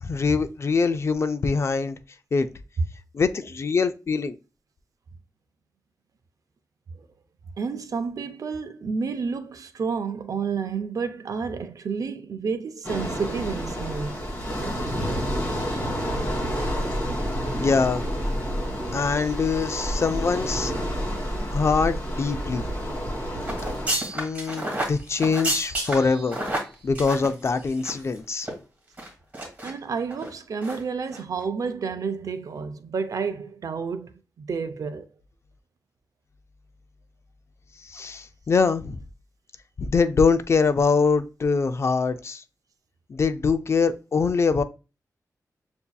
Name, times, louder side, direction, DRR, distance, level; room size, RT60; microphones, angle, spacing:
voice 1, 0.0-2.0 2.3-2.5 3.1-4.4 17.6-18.1 18.9-20.7 21.5-22.7 24.1-26.4 26.8-28.5 37.8-39.0 39.8-42.4 43.1-44.6, left 4 dB, 40° left, 0.3 m, -23 dB
voice 2, 7.4-14.2 29.6-35.1, right 5 dB, 60° right, 0.4 m, -30 dB
sound 1, 12.8-23.9, equal, 25° left, 2.4 m, -29 dB
sound 2, 23.4-28.1 28.4-28.5 29.0-29.7 30.1-30.3 30.6-30.8 31.1-31.2, right 1 dB, 25° right, 1.9 m, -30 dB
6.9 x 2.7 x 2.2 m
wide cardioid pair, 140°, 7 cm